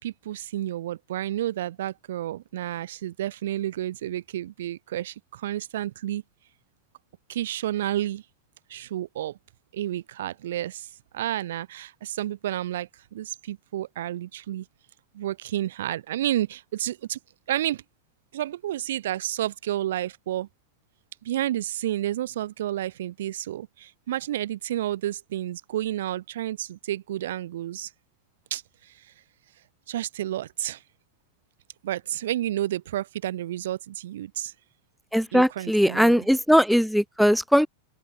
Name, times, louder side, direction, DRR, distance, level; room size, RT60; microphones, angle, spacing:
voice 1, 0.0-6.2 7.3-8.2 8.7-9.4 9.7-14.7 15.1-17.2 17.5-17.8 18.3-20.5 21.2-27.9 28.5-29.1 29.9-30.8 31.8-34.5 35.3-36.3, right 13 dB, 70° right, 2.1 m, -30 dB
voice 2, 35.1-37.7, equal, ahead, 0.5 m, -20 dB
open air
hypercardioid pair, 100°, 0 cm